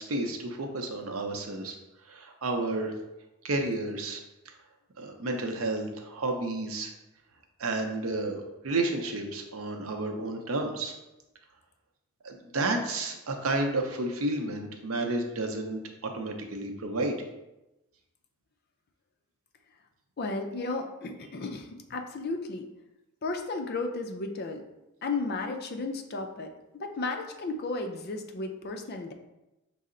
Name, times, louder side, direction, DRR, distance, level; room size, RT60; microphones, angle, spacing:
voice 1, 0.0-1.8 2.1-2.9 3.4-4.2 5.0-6.9 7.6-10.9 12.2-15.8 16.1-17.2, right 2 dB, 80° right, 3 dB, 0.6 m, -31 dB
voice 2, 20.2-22.7 23.2-24.6 25.0-26.5 26.8-29.1, left 3 dB, 50° left, 4 dB, 0.4 m, -34 dB
5.4 x 2.0 x 3.7 m, 0.96 s
head